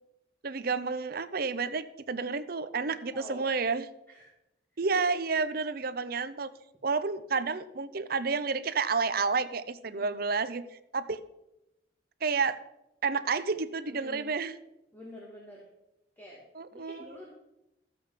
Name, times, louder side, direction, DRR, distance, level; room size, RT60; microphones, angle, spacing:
voice 1, 0.4-3.8 4.8-6.5 6.8-11.2 12.2-12.6 13.0-14.5 16.6-17.2, right 4 dB, 55° right, 12 dB, 0.7 m, -30 dB
voice 2, 2.9-3.5 4.1-4.3 4.9-5.0 9.8-10.2 13.9-14.3 14.9-15.7 16.2-17.3, left 1 dB, 10° left, -4 dB, 2.3 m, -48 dB
14.0 x 7.8 x 5.1 m, 0.89 s
head